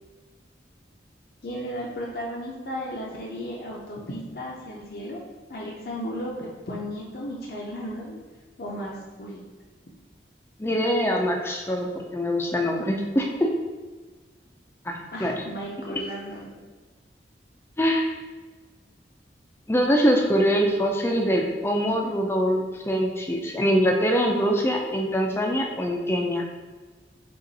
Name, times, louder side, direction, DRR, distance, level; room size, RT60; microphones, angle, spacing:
voice 1, 1.4-8.2 8.6-9.4 15.1-16.5, equal, 55° left, -4 dB, 0.6 m, -35 dB
voice 2, 10.6-13.3 14.8-14.9 15.2-15.3 17.8-18.1 19.7-26.4, equal, 15° left, 1 dB, 0.4 m, -23 dB
5.3 x 2.5 x 4.0 m, 1.4 s
head